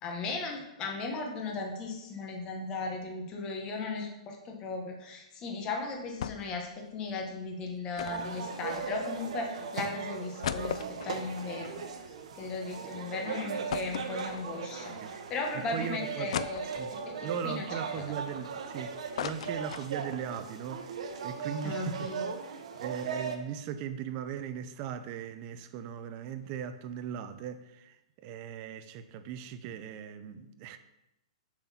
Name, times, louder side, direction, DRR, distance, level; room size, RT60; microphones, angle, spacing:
voice 1, 0.0-11.9 12.3-16.7 17.0-17.7 18.0-18.4 21.6-22.3, left 3 dB, 20° left, 2 dB, 1.1 m, -37 dB
Book Droppped, 6.2-6.6 6.9-7.0 8.0-9.2 9.8-9.9 10.2-12.6 13.0-13.1 13.7-14.8 15.4-15.5 16.3-17.2 17.7-18.7 18.9-20.3 20.6-20.7 21.0-21.2, left 9 dB, 65° left, 0.4 m, -38 dB
sound 1, 8.0-23.3, right 6 dB, 70° right, 1.0 m, -38 dB
voice 2, 15.5-16.3 16.7-16.9 17.2-22.1 22.8-30.8, right 8 dB, 30° right, 10 dB, 0.5 m, -38 dB
7.2 x 4.0 x 5.8 m, 0.89 s
hypercardioid pair, 165°, 4 cm